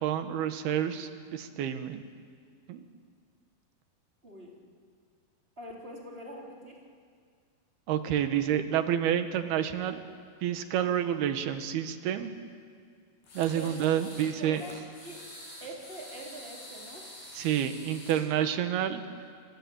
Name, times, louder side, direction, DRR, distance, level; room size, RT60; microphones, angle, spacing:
voice 1, 0.0-2.1 2.7-2.8 7.9-10.0 10.4-12.3 13.4-14.6 17.3-19.0, right 10 dB, 80° right, 8 dB, 3.4 m, -29 dB
voice 2, 4.2-4.6 5.6-6.8 13.5-15.2 15.6-17.1, right 1 dB, 15° right, -2 dB, 4.3 m, -44 dB
sound 1, 13.2-14.3 14.5-18.2, left 1 dB, 75° left, 9.3 m, -47 dB
28.5 x 23.5 x 8.8 m, 2.1 s
omnidirectional pair, 4.4 m